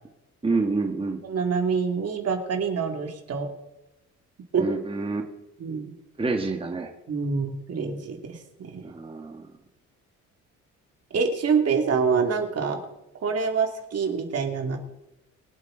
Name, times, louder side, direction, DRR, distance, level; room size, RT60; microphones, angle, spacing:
voice 1, 0.4-1.2 4.6-5.2 6.2-6.9 8.8-9.5, right 3 dB, 20° right, 3 dB, 1.6 m, -27 dB
voice 2, 1.2-3.5 4.5-4.6 5.6-5.9 7.1-8.8 11.1-12.8 13.2-14.8, right 5 dB, 55° right, 4 dB, 2.5 m, -26 dB
23.0 x 8.2 x 3.9 m, 0.94 s
cardioid pair, 90°, 30 cm